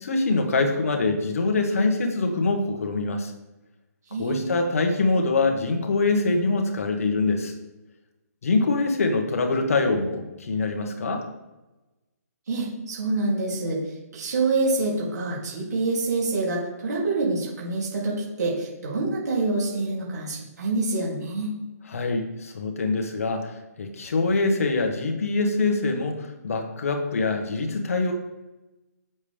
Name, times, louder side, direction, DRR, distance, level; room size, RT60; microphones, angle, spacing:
voice 1, 0.0-3.3 4.2-7.5 8.4-11.2 21.9-23.5 23.8-28.1, left 3 dB, 55° left, 4 dB, 1.4 m, -24 dB
voice 2, 4.1-4.5 12.5-13.8 14.1-21.5, right 3 dB, 75° right, -5 dB, 3.0 m, -26 dB
8.6 x 7.3 x 3.4 m, 1.0 s
hypercardioid pair, 170°, 9 cm